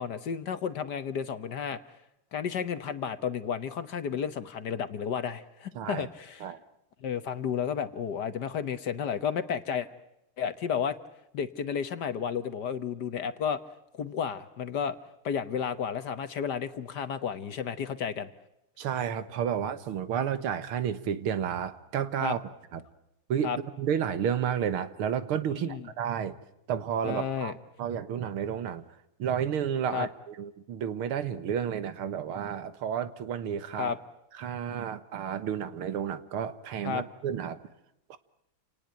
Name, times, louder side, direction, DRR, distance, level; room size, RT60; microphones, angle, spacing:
voice 1, 0.0-1.8 2.3-6.5 7.0-9.9 10.4-11.0 11.3-13.6 13.9-15.0 15.2-18.3 22.2-22.4 23.4-23.6 25.6-25.8 27.0-27.5 29.9-30.1 33.8-34.0 36.8-37.0, left 7 dB, 55° left, 12 dB, 1.6 m, -32 dB
voice 2, 5.8-6.1 6.4-6.6 18.8-22.8 23.3-26.4 26.7-27.5 27.8-28.9 29.2-33.9 34.4-37.6 38.1-38.2, right 8 dB, 80° right, 13 dB, 2.1 m, -31 dB
28.5 x 19.0 x 9.1 m, 0.85 s
omnidirectional pair, 2.4 m